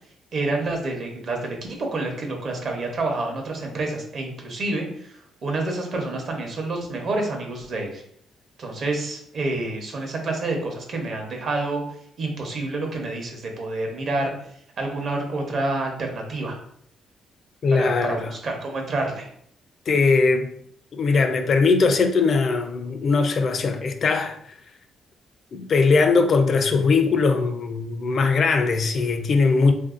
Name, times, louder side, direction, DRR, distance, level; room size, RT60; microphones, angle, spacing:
voice 1, 0.3-8.0 8.6-11.8 12.2-14.3 14.8-16.6 17.7-19.3, right 2 dB, 55° right, 0.8 m, -28 dB
voice 2, 17.6-18.3 19.9-20.5 20.9-24.4 25.5-29.7, left 4 dB, 50° left, 0.4 m, -20 dB
3.3 x 2.6 x 2.4 m
cardioid pair, 90°, 0 cm